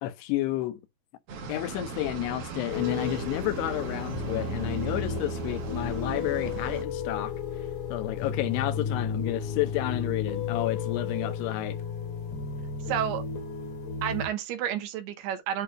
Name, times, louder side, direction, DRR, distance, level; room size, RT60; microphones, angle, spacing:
voice 1, 0.0-0.8 1.5-7.3 7.9-11.8, left 15 dB, 85° left, 2.8 m, -31 dB
sound 1, 1.3-6.8, right 5 dB, 60° right, 1.5 m, -38 dB
sound 2, 2.7-14.3, left 5 dB, 65° left, 1.9 m, -33 dB
voice 2, 12.8-13.2 14.0-15.6, right 10 dB, 80° right, 3.0 m, -30 dB
8.1 x 2.8 x 4.8 m
omnidirectional pair, 4.7 m